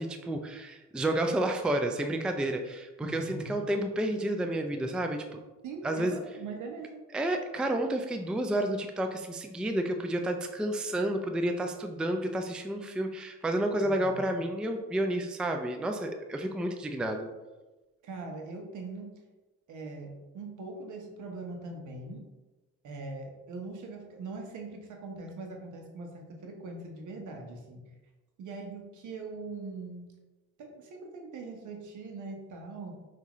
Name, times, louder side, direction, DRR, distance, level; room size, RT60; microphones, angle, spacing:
voice 1, 0.0-5.4 5.8-6.2 7.1-17.3, right 1 dB, 5° right, 4 dB, 0.4 m, -30 dB
voice 2, 3.0-3.5 5.6-7.0 13.8-14.3 18.0-19.2 19.7-22.2 22.8-27.8 28.4-30.1 30.6-33.0, right 3 dB, 65° right, 2 dB, 1.1 m, -41 dB
5.7 x 2.8 x 3.1 m, 1.1 s
supercardioid pair, 70°, 32 cm